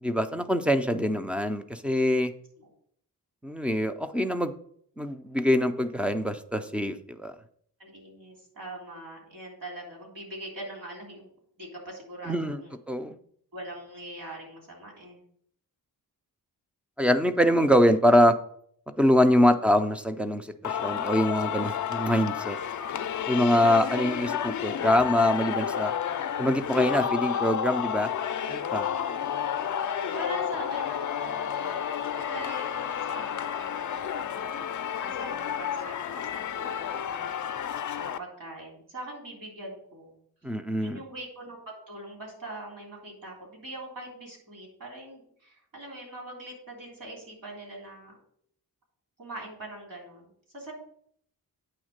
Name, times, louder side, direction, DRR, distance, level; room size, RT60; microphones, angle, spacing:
voice 1, 0.0-2.3 3.4-4.5 5.0-7.3 12.3-12.6 12.9-13.2 17.0-18.4 19.0-22.6 23.3-25.9 26.4-28.1 28.5-28.9 40.4-41.0, equal, 5° right, 9 dB, 0.3 m, -24 dB
voice 2, 7.8-11.3 11.6-12.8 13.5-15.2 17.5-17.6 19.4-19.6 23.7-24.2 28.9-29.4 30.1-31.8 32.2-37.4 38.0-40.1 40.8-48.2 49.2-50.7, right 1 dB, 65° right, -2 dB, 3.3 m, -42 dB
Singing, 20.6-38.2, left 8 dB, 55° left, 0.4 m, -31 dB
8.7 x 3.5 x 6.5 m, 0.65 s
wide cardioid pair, 180°, 35 cm